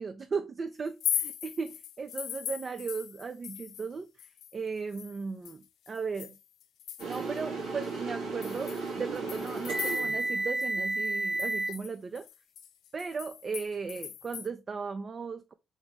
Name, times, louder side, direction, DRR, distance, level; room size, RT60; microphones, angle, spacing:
voice 1, 0.0-4.1 4.5-6.4 7.0-12.3 12.9-15.5, right 5 dB, 40° right, 0.4 m, -36 dB
sound 1, 0.8-3.9 4.2-7.4 7.8-7.9 8.4-10.4 10.6-10.7 11.0-14.5, left 10 dB, 80° left, 0.5 m, -39 dB
sound 2, 7.0-11.7, right 2 dB, 85° right, 2.3 m, -32 dB
3.9 x 3.0 x 3.2 m
cardioid pair, 90°, 0 cm